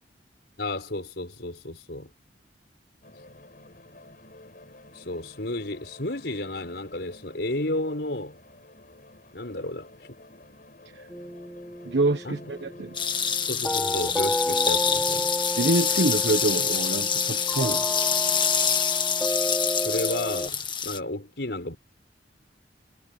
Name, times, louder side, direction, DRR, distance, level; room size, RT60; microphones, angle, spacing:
voice 1, 0.6-2.1 4.9-8.4 9.3-9.9 12.2-12.5 13.5-15.3 19.8-21.8, left 1 dB, 65° left, 5.6 m, -32 dB
sound 1, 3.0-18.8, left 2 dB, 50° left, 7.5 m, -51 dB
sound 2, 11.1-20.5, left 1 dB, 5° left, 3.0 m, -32 dB
voice 2, 11.8-12.9 15.6-17.8, right 2 dB, 80° right, 1.2 m, -26 dB
sound 3, 12.9-21.0, left 7 dB, 25° left, 1.8 m, -26 dB
head